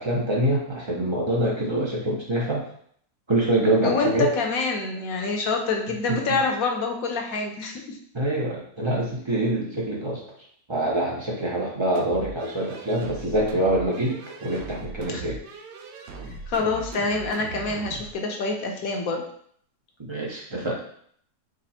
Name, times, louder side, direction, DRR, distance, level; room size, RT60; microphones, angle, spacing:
voice 1, 0.0-2.7 3.3-4.3 6.1-6.4 8.1-10.2 10.7-15.4 20.0-20.8, right 1 dB, 40° right, -3 dB, 0.4 m, -25 dB
voice 2, 3.8-8.0 15.1-15.2 16.5-19.2, left 3 dB, 65° left, 2 dB, 1.1 m, -26 dB
sound 1, 12.0-18.1, right 3 dB, 90° right, 1.3 m, -39 dB
5.1 x 2.1 x 4.1 m, 0.63 s
omnidirectional pair, 1.7 m